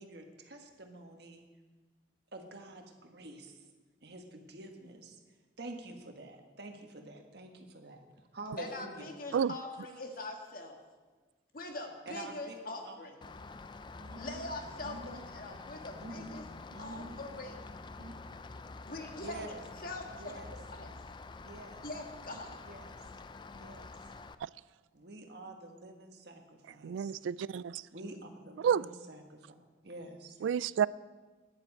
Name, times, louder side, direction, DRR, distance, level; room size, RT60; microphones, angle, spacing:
voice 1, 0.0-1.4 2.3-3.6 4.0-5.2 5.6-8.1 8.3-9.2 12.0-12.5 12.8-13.0 14.0-14.5 14.8-15.2 16.0-16.4 16.7-17.2 18.0-18.2 19.2-19.6 20.2-20.6 21.4-21.9 22.6-23.0 23.5-23.9 24.9-27.1 27.9-29.5 29.8-30.4, right 2 dB, 55° right, 3 dB, 1.5 m, -47 dB
voice 2, 8.6-10.8 11.5-13.1 14.1-16.4 16.8-17.6 18.8-20.4 20.7-20.9 21.8-22.6, left 2 dB, 50° left, 3 dB, 1.6 m, -43 dB
Rain, 13.2-24.3, left 3 dB, 25° left, 0.4 m, -48 dB
voice 3, 26.8-27.8 28.6-28.8 30.4-30.9, right 8 dB, 80° right, 20 dB, 0.3 m, -30 dB
10.5 x 7.6 x 8.6 m, 1.3 s
head